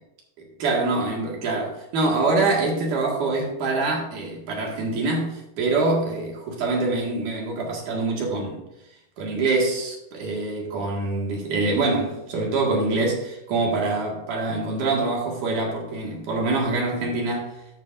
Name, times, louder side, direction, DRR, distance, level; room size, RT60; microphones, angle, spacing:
voice 1, 0.6-8.6 9.2-17.6, right 3 dB, 65° right, 3.4 m, -25 dB
13.5 x 6.8 x 2.6 m
omnidirectional pair, 3.9 m